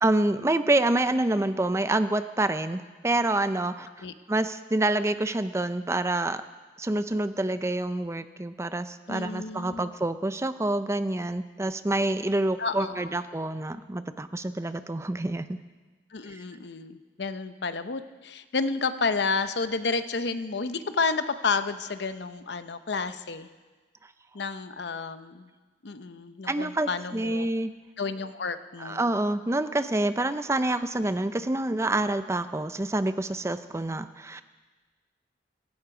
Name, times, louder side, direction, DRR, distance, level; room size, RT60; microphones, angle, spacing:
voice 1, 0.0-3.9 4.3-6.4 6.8-15.6 16.3-16.4 26.5-27.7 28.8-34.4, right 2 dB, 15° right, 11 dB, 0.5 m, -27 dB
voice 2, 9.1-9.9 12.6-13.2 16.1-23.5 24.3-25.5 25.8-27.5 28.0-29.1, left 4 dB, 70° left, 11 dB, 0.7 m, -31 dB
16.0 x 16.0 x 4.9 m, 1.3 s
head